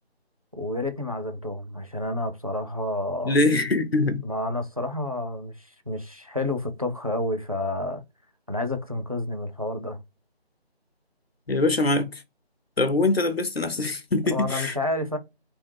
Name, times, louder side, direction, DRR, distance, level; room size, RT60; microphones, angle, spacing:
voice 1, 0.5-3.4 4.2-8.0 8.5-10.0 14.3-15.2, left 1 dB, 35° right, 0.5 m, -30 dB
voice 2, 3.2-4.2 11.5-12.2 12.8-14.7, left 2 dB, 70° left, 0.8 m, -23 dB
3.6 x 2.8 x 4.5 m
figure-of-eight pair, 165°, 32 cm